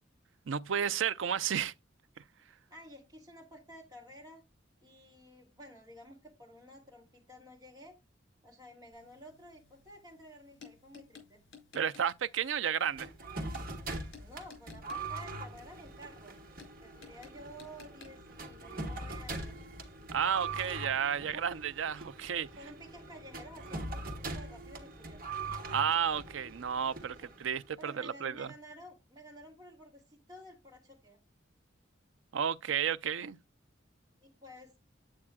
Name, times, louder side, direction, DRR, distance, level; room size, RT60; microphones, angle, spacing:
voice 1, 0.5-1.7 11.7-13.1 20.1-22.5 25.7-28.5 32.3-33.4, right 8 dB, 80° right, 0.5 m, -32 dB
voice 2, 2.7-4.4 4.8-7.9 8.4-11.4 14.2-16.4 16.8-19.7 22.6-25.3 27.2-27.3 27.8-31.2 34.2-34.7, equal, 20° right, 2.7 m, -52 dB
sound 1, 8.9-20.4, left 6 dB, 70° left, 4.3 m, -59 dB
sound 2, 13.0-27.7, right 2 dB, 50° right, 1.6 m, -42 dB
8.6 x 8.6 x 2.3 m
head